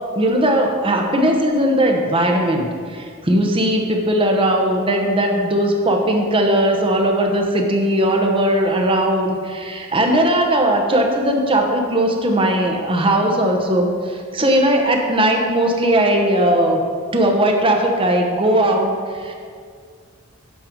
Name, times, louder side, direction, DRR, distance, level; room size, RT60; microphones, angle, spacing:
voice 1, 0.1-16.8 17.1-19.3, right 1 dB, 25° right, 2 dB, 0.9 m, -18 dB
8.8 x 6.5 x 5.2 m, 2.1 s
head